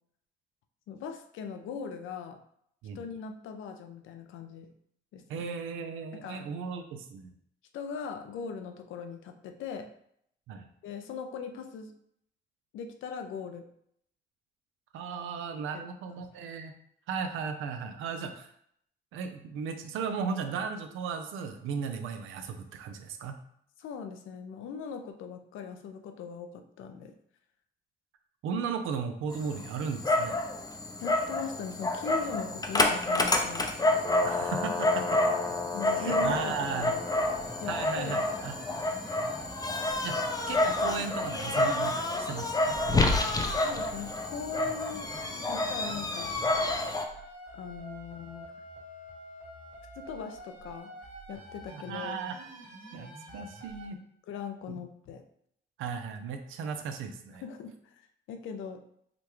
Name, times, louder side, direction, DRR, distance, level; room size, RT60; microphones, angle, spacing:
voice 1, 0.9-2.4 2.9-4.7 5.1-5.4 6.1-6.4 7.7-9.9 10.8-12.0 12.7-13.7 15.7-15.8 16.2-16.3 23.8-27.1 31.0-33.7 35.7-37.0 37.6-38.2 43.6-45.1 45.5-46.4 47.5-48.5 50.0-50.9 51.3-52.2 54.3-55.2 57.4-58.0 58.3-58.8, left 6 dB, 80° left, 6 dB, 0.5 m, -40 dB
voice 2, 5.3-7.3 10.5-10.7 14.9-16.7 17.1-18.5 19.1-23.4 28.4-30.4 34.2-35.2 35.9-36.9 37.7-38.6 40.0-40.2 40.5-42.8 51.9-52.4 52.9-54.0 54.7-54.8 55.8-57.4, right 6 dB, 85° right, 6 dB, 0.5 m, -36 dB
Dog, 29.3-47.0, left 2 dB, 20° left, 0.5 m, -29 dB
sound 1, 36.2-53.8, right 1 dB, 40° right, 1.6 m, -47 dB
5.0 x 2.3 x 3.0 m, 0.69 s
cardioid pair, 90°, 20 cm